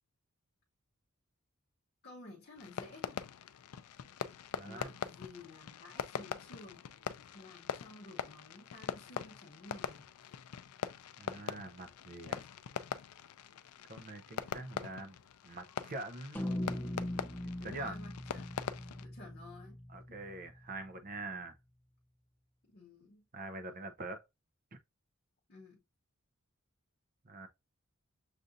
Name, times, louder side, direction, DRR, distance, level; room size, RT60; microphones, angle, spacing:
voice 1, 2.0-3.2 4.6-6.9 7.3-10.1 17.5-18.7 18.9-19.8 20.1-20.2 22.6-23.3 25.5-25.8, left 2 dB, 45° left, 0.7 m, -53 dB
Fireworks, 2.6-19.1, left 8 dB, 80° left, 0.4 m, -43 dB
voice 2, 4.5-4.9 11.2-12.4 13.9-15.2 15.4-16.4 17.6-17.9 19.9-21.6 23.3-24.2 24.7-24.8 27.2-27.5, right 2 dB, 40° right, 0.6 m, -44 dB
sound 1, 16.3-20.8, left 1 dB, 10° left, 0.4 m, -41 dB
6.5 x 2.5 x 2.6 m
head